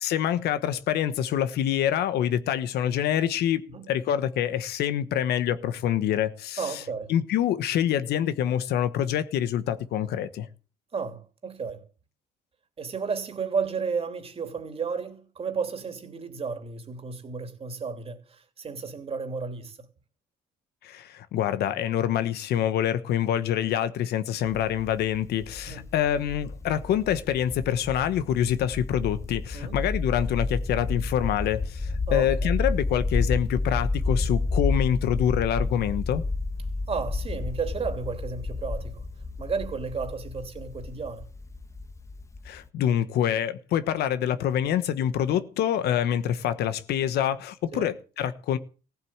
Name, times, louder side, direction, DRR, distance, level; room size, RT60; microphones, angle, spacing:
voice 1, 0.0-6.8 7.1-10.5 20.8-36.2 42.4-48.6, left 10 dB, 70° left, 1.2 m, -26 dB
voice 2, 6.6-7.1 10.9-11.9 12.8-19.9 25.7-25.9 29.5-29.8 32.1-32.5 36.9-39.0 39.4-41.2 47.7-47.9, right 5 dB, 35° right, 3.1 m, -33 dB
sound 1, 24.4-42.7, left 3 dB, 15° left, 1.2 m, -31 dB
16.0 x 7.9 x 8.8 m
cardioid pair, 110°, 17 cm